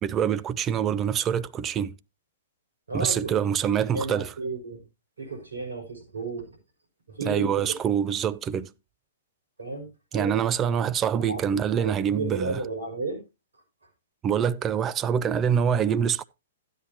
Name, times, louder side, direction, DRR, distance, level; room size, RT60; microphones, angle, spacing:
voice 1, 0.0-1.9 2.9-4.3 7.2-8.7 10.1-12.6 14.2-16.2, right 8 dB, 25° right, 0.6 m, -25 dB
voice 2, 2.9-3.4 3.9-4.8 5.2-6.6 7.1-7.5 9.6-10.6 11.2-13.2, right 2 dB, 85° right, 5.6 m, -33 dB
13.0 x 9.7 x 2.9 m
hypercardioid pair, 120°, 0 cm